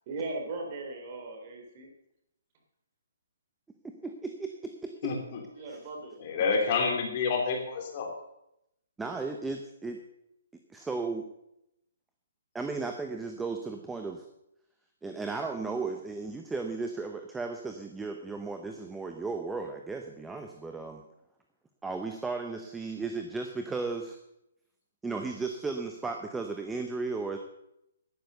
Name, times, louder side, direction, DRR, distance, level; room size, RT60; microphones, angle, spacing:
voice 1, 0.1-1.9 5.6-6.2, right 3 dB, 35° right, 2 dB, 3.4 m, -38 dB
voice 2, 4.0-5.1 5.7-5.8 9.0-10.0 10.7-11.3 12.5-14.2 15.0-21.0 21.8-24.2 25.0-27.4, right 4 dB, 5° right, 5 dB, 0.9 m, -35 dB
voice 3, 5.0-5.4 6.2-8.1, left 5 dB, 35° left, 2 dB, 3.0 m, -28 dB
11.5 x 10.0 x 6.7 m, 0.81 s
hypercardioid pair, 160°, 0 cm